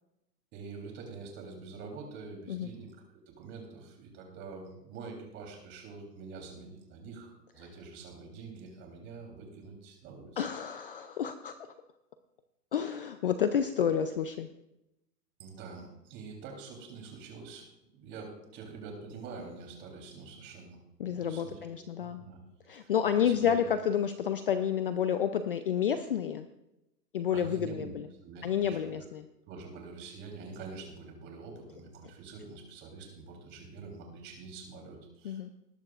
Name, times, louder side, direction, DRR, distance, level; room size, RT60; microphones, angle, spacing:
voice 1, 0.5-2.9 3.4-10.4 15.4-20.8 21.1-21.6 22.0-22.4 22.8-22.9 23.2-23.6 27.3-27.9 28.2-29.1 29.5-35.5, right 4 dB, 25° right, 1 dB, 3.4 m, -46 dB
voice 2, 10.4-11.6 12.7-14.5 21.0-22.2 22.7-26.5 27.1-28.1 28.4-29.3 35.2-35.5, left 8 dB, 35° left, 9 dB, 0.5 m, -30 dB
19.0 x 12.0 x 2.5 m, 0.88 s
hypercardioid pair, 155°, 50 cm